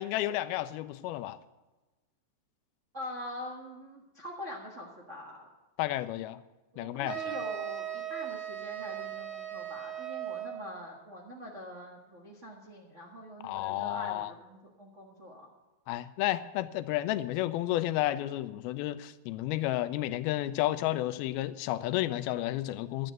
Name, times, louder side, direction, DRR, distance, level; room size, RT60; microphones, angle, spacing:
voice 1, 0.0-1.4 5.8-6.4 6.8-7.4 13.4-14.3 15.9-23.1, left 15 dB, 85° left, 13 dB, 2.4 m, -32 dB
voice 2, 2.9-5.5 6.7-15.5, left 1 dB, 85° right, -3 dB, 0.6 m, -44 dB
sound 1, 7.0-10.7, right 11 dB, 50° right, 2.9 m, -38 dB
12.0 x 9.1 x 7.6 m, 1.1 s
omnidirectional pair, 4.4 m